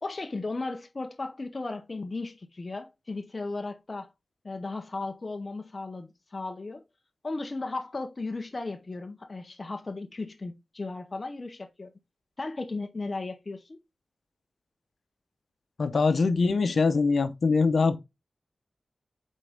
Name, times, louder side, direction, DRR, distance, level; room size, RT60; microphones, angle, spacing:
voice 1, 0.0-4.1 4.4-6.8 7.2-11.9 12.4-13.8, left 3 dB, 35° left, 0.7 m, -35 dB
voice 2, 15.8-18.0, left 4 dB, 65° left, 0.9 m, -23 dB
8.3 x 3.6 x 3.4 m
wide cardioid pair, 125°, 0 cm